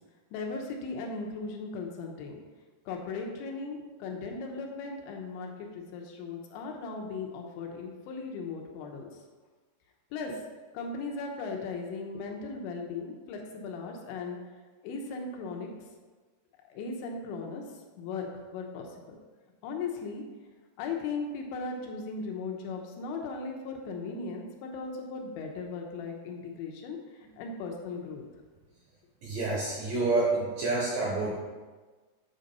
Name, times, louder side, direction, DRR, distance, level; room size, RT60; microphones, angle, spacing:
voice 1, 0.3-2.4 2.9-9.1 10.1-10.4 10.7-14.4 14.8-15.7 16.7-17.6 18.0-19.2 19.6-20.2 20.8-27.0 27.4-28.2, left 4 dB, 80° left, 2 dB, 3.2 m, -37 dB
voice 2, 29.2-31.3, right 3 dB, 75° right, -4 dB, 2.1 m, -28 dB
8.3 x 4.1 x 5.3 m, 1.3 s
omnidirectional pair, 5.3 m